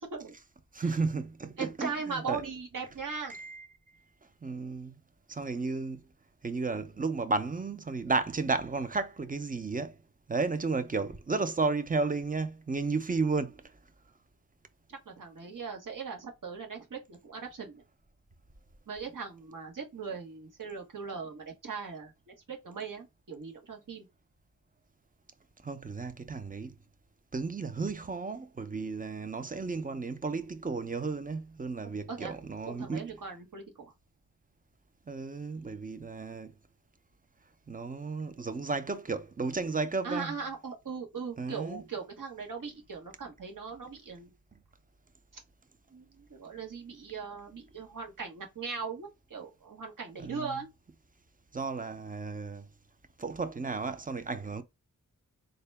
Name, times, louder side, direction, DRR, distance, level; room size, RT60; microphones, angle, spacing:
voice 1, 0.7-2.4 3.3-3.7 4.4-5.0 5.3-6.1 6.4-10.0 10.3-13.8 25.6-26.8 27.3-33.1 35.1-36.6 37.7-40.4 41.4-41.8 50.2-50.6 51.5-52.7 53.2-54.6, right 4 dB, 25° right, 0.5 m, -33 dB
voice 2, 1.6-3.4 14.9-17.8 18.9-22.1 22.5-24.1 32.1-32.3 32.7-33.9 40.0-44.3 45.9-50.7, right 5 dB, 65° right, 1.3 m, -39 dB
3.8 x 2.2 x 3.4 m
wide cardioid pair, 80°, 35 cm